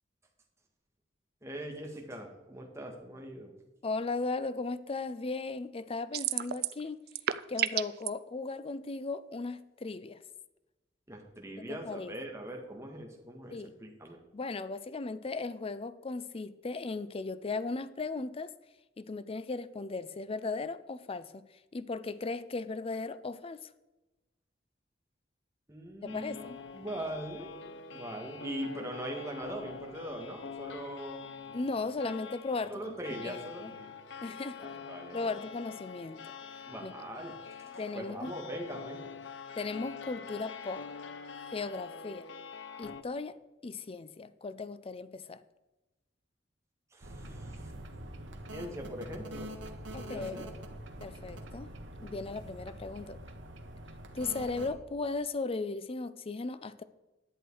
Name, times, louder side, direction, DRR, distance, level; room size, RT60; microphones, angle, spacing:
voice 1, 1.4-3.5 11.1-14.2 25.7-26.4 26.7-27.5 27.9-31.4 32.7-33.9 34.3-35.3 36.7-37.4 37.9-39.1 46.9-47.7 48.5-49.5 50.0-50.5, right 1 dB, 15° right, 1 dB, 1.8 m, -41 dB
voice 2, 3.8-7.0 7.5-10.2 11.6-12.1 13.5-13.7 14.3-18.5 19.0-21.5 21.7-23.7 26.0-26.6 31.5-33.0 33.2-33.7 34.2-34.6 35.1-36.2 36.8-36.9 37.8-38.3 39.5-40.8 41.5-42.3 42.8-43.4 43.6-45.4 49.9-50.5 51.0-51.7 52.0-53.2 54.1-56.8, left 3 dB, 30° left, 14 dB, 0.5 m, -37 dB
sound 1, 6.1-6.8 7.1-8.1, right 12 dB, 55° right, 0.4 m, -30 dB
sound 2, 26.1-43.0, left 6 dB, 70° left, 0.7 m, -45 dB
sound 3, 47.0-54.7, right 1 dB, 85° right, 1.4 m, -45 dB
11.0 x 8.0 x 4.7 m, 1.0 s
head